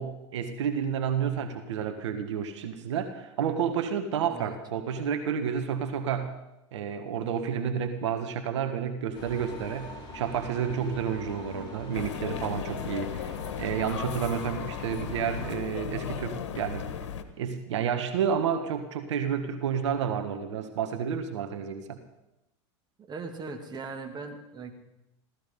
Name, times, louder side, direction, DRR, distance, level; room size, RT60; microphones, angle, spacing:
voice 1, 0.0-6.3 6.7-16.9 17.4-22.0, right 7 dB, 80° right, 7 dB, 1.5 m, -30 dB
sound 1, 9.1-15.5, left 2 dB, 30° left, 6.3 m, -43 dB
sound 2, 11.9-17.2, left 8 dB, 85° left, 1.3 m, -36 dB
voice 2, 23.0-24.7, right 4 dB, 30° right, 4 dB, 2.5 m, -39 dB
16.5 x 14.0 x 5.4 m, 0.92 s
hypercardioid pair, 105°, 15 cm